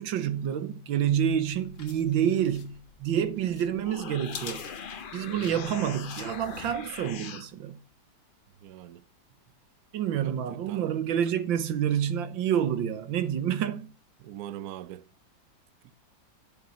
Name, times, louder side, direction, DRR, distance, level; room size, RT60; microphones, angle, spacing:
voice 1, 0.0-4.6 5.1-7.8 9.9-13.9, right 9 dB, 85° right, 1.7 m, -28 dB
sound 1, 1.1-7.3, left 5 dB, 55° left, 2.0 m, -48 dB
sound 2, 3.7-7.5, left 6 dB, 85° left, 0.4 m, -41 dB
voice 2, 8.6-9.1 10.2-10.9 14.2-15.0 15.8-15.9, right 12 dB, 65° right, 1.0 m, -42 dB
10.0 x 7.2 x 5.9 m
omnidirectional pair, 2.1 m